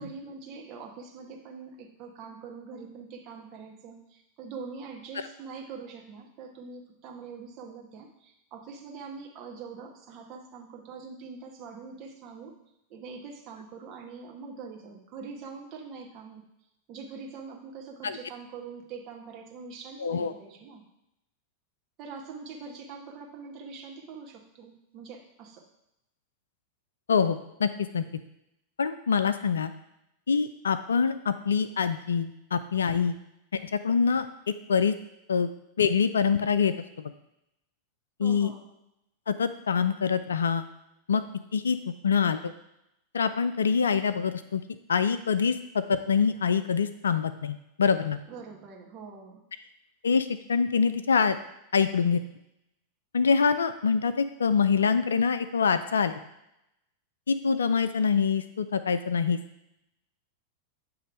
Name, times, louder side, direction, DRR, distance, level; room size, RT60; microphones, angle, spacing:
voice 1, 0.0-12.5 12.9-16.4 16.9-20.8 22.0-25.6 38.2-38.7 48.3-49.5, right 5 dB, 40° right, 1 dB, 1.2 m, -43 dB
voice 2, 20.0-20.3 27.1-28.0 28.8-29.7 30.3-33.2 33.5-35.0 35.3-35.5 35.8-37.1 38.2-38.5 39.3-40.7 41.1-41.2 41.5-41.8 42.0-42.5 43.1-44.6 44.9-48.2 50.0-51.4 51.7-52.2 53.1-56.2 57.3-59.4, left 6 dB, 70° left, 11 dB, 0.4 m, -25 dB
7.9 x 3.1 x 5.0 m, 0.85 s
figure-of-eight pair, 90°, 0 cm